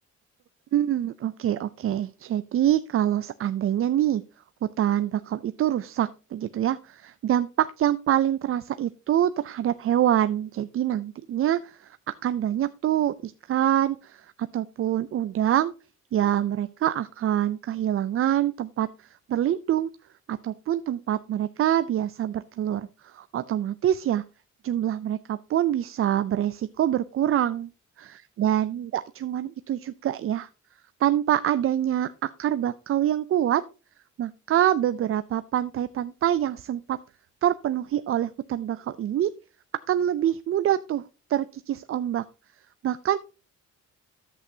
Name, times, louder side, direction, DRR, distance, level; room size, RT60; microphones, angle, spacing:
voice 1, 0.7-4.2 4.8-15.7 16.1-19.9 20.3-24.2 24.6-27.7 28.4-30.5 31.0-33.6 34.2-37.0 37.4-39.3 39.9-41.0 41.3-42.2 42.8-43.2, right 11 dB, 45° right, 12 dB, 0.4 m, -25 dB
10.5 x 8.0 x 2.8 m, 0.32 s
cardioid pair, 90°, 30 cm